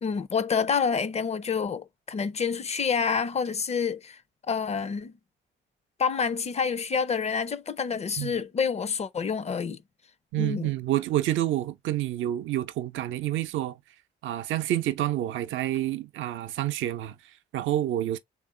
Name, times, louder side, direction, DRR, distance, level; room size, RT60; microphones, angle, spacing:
voice 1, 0.0-4.2 4.5-5.1 6.0-9.8 10.4-10.7, left 6 dB, 35° left, 0.5 m, -28 dB
voice 2, 10.3-13.8 14.2-18.2, right 13 dB, 75° right, 0.5 m, -28 dB
3.5 x 2.4 x 3.7 m
cardioid pair, 90°, 20 cm